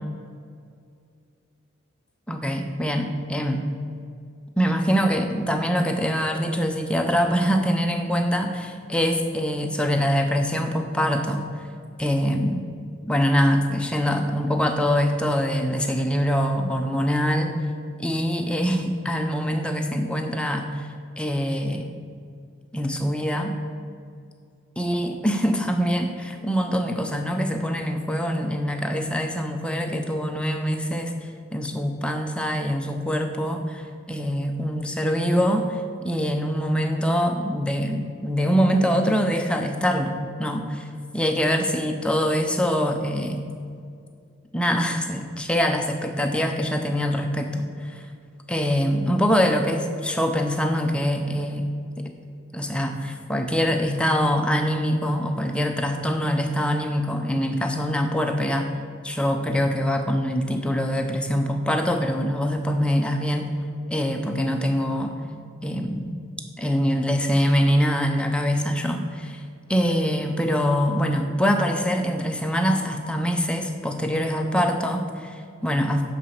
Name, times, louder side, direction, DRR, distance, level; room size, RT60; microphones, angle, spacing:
voice 1, 2.3-3.7 4.6-11.4 12.0-12.7 13.0-17.5 18.0-20.9 21.2-21.9 22.7-23.6 24.8-31.1 31.5-33.8 34.1-40.9 41.1-43.4 44.5-48.0 48.5-51.7 52.5-58.7 59.0-63.5 63.9-65.2 65.6-66.2 66.6-69.4 69.7-76.0, equal, 5° left, 4 dB, 0.6 m, -24 dB
10.0 x 4.1 x 6.5 m, 2.3 s
head